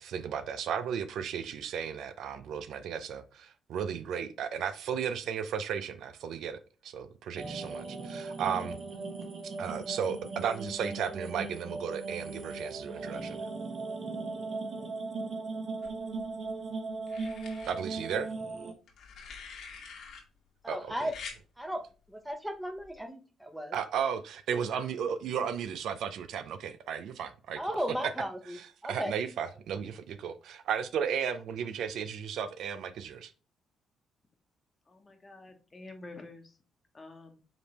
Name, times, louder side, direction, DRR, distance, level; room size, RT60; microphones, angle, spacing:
voice 1, 0.0-8.8 9.4-13.4 17.6-18.3 20.7-21.1 23.7-27.7 28.5-33.3, right 7 dB, 75° right, 0.5 m, -34 dB
sound 1, 7.4-18.7, right 3 dB, 50° right, 1.0 m, -38 dB
sound 2, 15.8-16.5 17.1-17.7 18.9-20.2 21.1-21.4 22.8-23.0, left 5 dB, 70° left, 1.3 m, -46 dB
voice 2, 20.6-21.1 21.6-21.8 22.1-23.7 27.6-28.6 28.8-29.1, equal, 5° right, 0.8 m, -35 dB
voice 3, 34.9-36.6 36.9-37.4, left 2 dB, 25° left, 1.1 m, -48 dB
5.0 x 3.3 x 3.0 m
cardioid pair, 90°, 0 cm